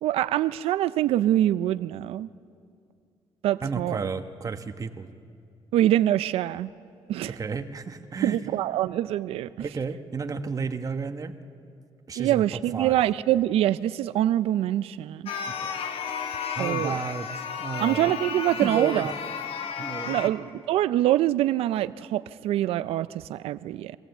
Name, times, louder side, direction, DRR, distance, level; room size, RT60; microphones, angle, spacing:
voice 1, 0.0-2.3 3.4-4.0 5.7-6.7 7.1-7.4 8.2-9.5 12.2-15.3 16.6-17.0 17.8-19.1 20.1-24.0, right 13 dB, 90° right, 15 dB, 0.4 m, -24 dB
voice 2, 3.6-5.1 7.3-8.5 9.6-11.3 12.1-12.4 12.7-13.0 15.5-15.7 16.5-17.3 17.6-18.1 18.6-19.1 19.8-20.2, right 5 dB, 35° right, 8 dB, 1.1 m, -32 dB
sound 1, 15.3-20.3, left 7 dB, 75° left, 1.1 m, -33 dB
22.5 x 16.0 x 7.9 m, 2.3 s
cardioid pair, 100°, 10 cm